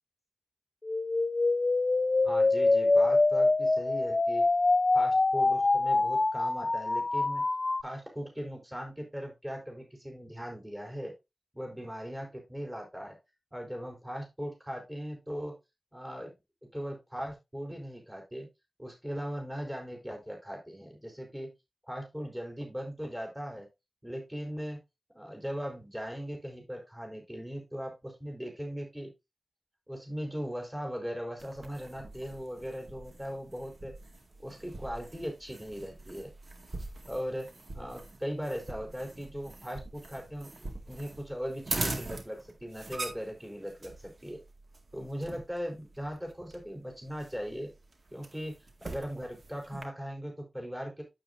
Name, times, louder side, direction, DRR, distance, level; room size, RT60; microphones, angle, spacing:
sound 1, 0.8-7.8, left 3 dB, 45° left, 0.7 m, -25 dB
voice 1, 2.2-4.4 4.9-7.4 7.8-11.1 11.5-13.1 13.5-15.5 15.9-16.3 16.7-18.5 18.8-21.5 21.9-23.7 24.0-24.8 25.1-29.1 29.9-33.9 34.4-36.3 37.0-37.5 37.7-44.4 44.9-47.7 48.1-48.5 48.8-51.0, equal, 10° right, 1 dB, 4.4 m, -39 dB
sound 2, 31.4-49.8, right 2 dB, 60° right, 2.0 m, -43 dB
9.1 x 7.9 x 2.6 m, 0.23 s
cardioid pair, 50°, 0 cm